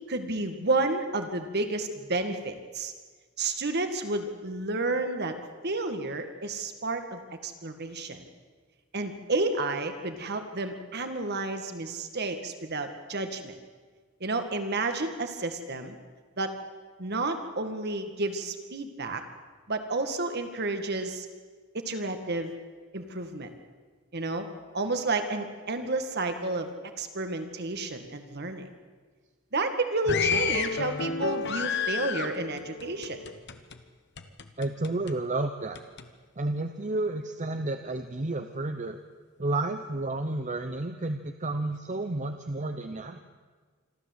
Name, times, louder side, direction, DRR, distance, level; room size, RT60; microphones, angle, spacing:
voice 1, 0.1-2.9 3.4-5.4 5.6-8.3 8.9-13.5 14.2-16.0 16.4-16.5 17.0-19.2 19.7-21.3 21.7-22.5 22.9-23.5 24.1-24.5 24.7-26.7 27.0-28.7 29.5-33.2, right 2 dB, 50° right, 7 dB, 2.0 m, -31 dB
sound 1, 30.1-33.8 34.2-35.1 35.8-36.1, left 5 dB, 55° left, 1.3 m, -31 dB
voice 2, 34.6-35.8 36.4-39.0 39.4-43.2, right 2 dB, 35° right, 7 dB, 0.8 m, -31 dB
26.0 x 13.0 x 8.1 m, 1.5 s
head